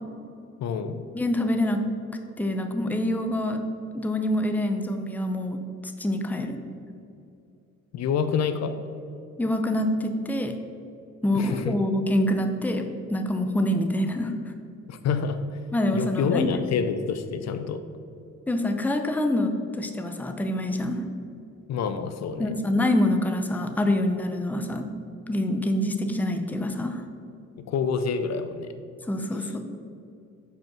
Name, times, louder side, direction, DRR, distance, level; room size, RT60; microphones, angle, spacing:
voice 1, 0.6-1.0 7.9-8.7 11.3-11.8 14.9-15.6 15.9-17.8 21.7-22.5 27.7-28.7, left 6 dB, 60° left, 9 dB, 0.5 m, -27 dB
voice 2, 1.1-1.8 2.4-3.6 3.9-5.6 5.8-6.6 9.4-10.5 11.2-14.3 15.7-16.5 18.5-19.5 19.8-21.0 22.4-24.9 25.3-27.0 29.1-29.7, left 1 dB, 5° left, 5 dB, 0.6 m, -26 dB
5.2 x 4.5 x 6.0 m, 2.5 s
cardioid pair, 90°, 30 cm